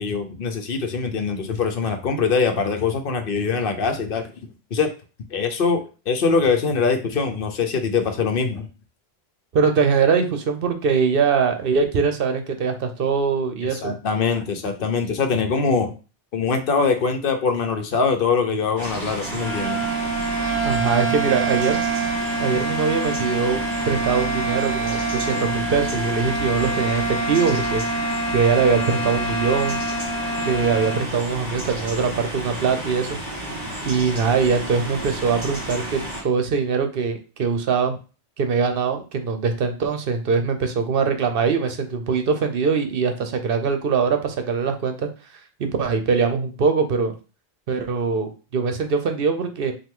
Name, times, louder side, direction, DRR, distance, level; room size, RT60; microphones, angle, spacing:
voice 1, 0.0-4.3 4.7-4.9 5.3-8.7 13.7-15.9 16.3-19.8, left 5 dB, 60° left, 5 dB, 0.9 m, -23 dB
voice 2, 9.5-13.9 20.6-21.8 22.4-23.6 23.9-27.8 28.3-29.8 30.5-33.2 33.8-38.0 38.4-45.1 45.6-47.1 47.7-49.7, right 5 dB, 65° right, 7 dB, 0.8 m, -22 dB
sound 1, 18.8-36.2, right 1 dB, 45° right, 1.9 m, -32 dB
sound 2, 19.2-31.1, right 3 dB, 25° right, 2.0 m, -26 dB
5.5 x 2.3 x 3.7 m, 0.34 s
omnidirectional pair, 1.1 m